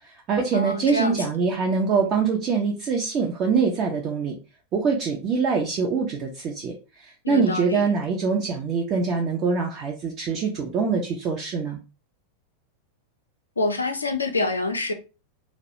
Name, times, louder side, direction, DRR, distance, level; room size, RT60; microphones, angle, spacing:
voice 1, 0.0-4.4 4.7-11.8, right 5 dB, 35° right, 0.4 m, -24 dB
voice 2, 0.5-1.3 7.2-7.9 13.6-14.9, left 2 dB, 80° left, 0.4 m, -26 dB
2.3 x 2.0 x 2.7 m
figure-of-eight pair, 90°, 0 cm